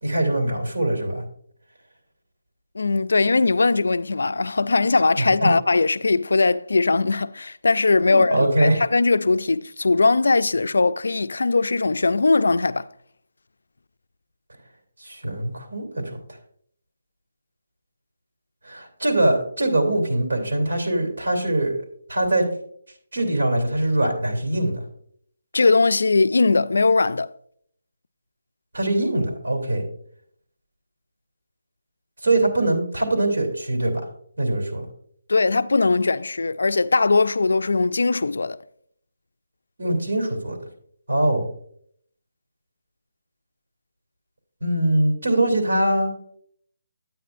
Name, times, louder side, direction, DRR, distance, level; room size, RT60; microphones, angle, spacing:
voice 1, 0.0-1.2 5.2-5.5 8.0-8.8 15.0-16.2 18.6-21.8 22.1-22.4 23.1-24.8 28.7-29.8 32.2-34.0 34.4-34.9 39.8-40.6 41.1-41.5 44.6-46.1, right 1 dB, 75° right, 2.6 m, -22 dB
voice 2, 2.8-12.9 25.5-27.3 35.3-38.6, left 3 dB, 85° left, 0.3 m, -20 dB
9.2 x 9.1 x 2.5 m
hypercardioid pair, 170°, 0 cm